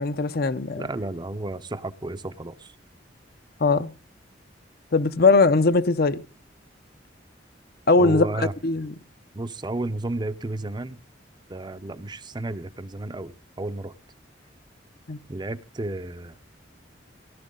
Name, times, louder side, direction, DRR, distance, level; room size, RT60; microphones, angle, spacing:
voice 1, 0.0-0.9 3.6-3.9 4.9-6.2 7.9-8.3 8.6-8.9 15.1-15.2, left 3 dB, 55° left, 0.7 m, -20 dB
voice 2, 0.8-2.7 8.0-8.5 9.3-11.0 11.5-13.9 15.3-16.4, right 2 dB, 25° right, 0.6 m, -32 dB
17.5 x 12.0 x 3.8 m
head